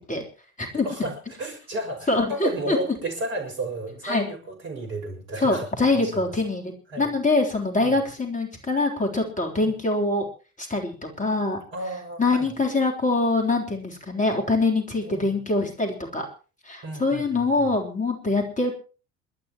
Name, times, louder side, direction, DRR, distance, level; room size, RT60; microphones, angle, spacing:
voice 1, 0.8-5.7 5.9-6.1 6.9-7.1 7.8-8.0 9.6-9.7 11.7-12.5 15.0-15.4 16.8-17.7, right 2 dB, 65° right, 2 dB, 6.3 m, -33 dB
voice 2, 2.1-2.8 4.0-4.3 5.4-10.3 10.6-11.6 12.2-16.3 16.7-18.7, left 3 dB, 15° left, 1 dB, 3.6 m, -24 dB
27.5 x 12.5 x 3.0 m, 0.36 s
figure-of-eight pair, 65°, 43 cm